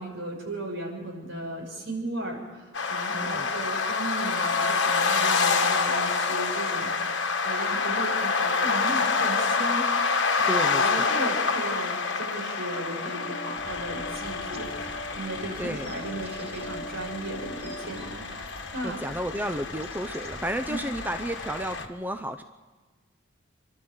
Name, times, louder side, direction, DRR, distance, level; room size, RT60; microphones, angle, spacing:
voice 1, 0.0-19.0 20.7-20.8, right 1 dB, 70° right, 0 dB, 6.2 m, -36 dB
sound 1, 2.7-21.9, left 4 dB, 60° left, 1.4 m, -28 dB
voice 2, 3.1-3.5 10.5-11.1 15.6-15.9 18.8-22.4, equal, 10° right, 7 dB, 0.6 m, -32 dB
sound 2, 12.7-18.2, equal, 35° left, 1.9 m, -42 dB
sound 3, 13.6-21.9, right 1 dB, 30° right, 1.1 m, -46 dB
27.5 x 12.5 x 8.0 m, 1.4 s
head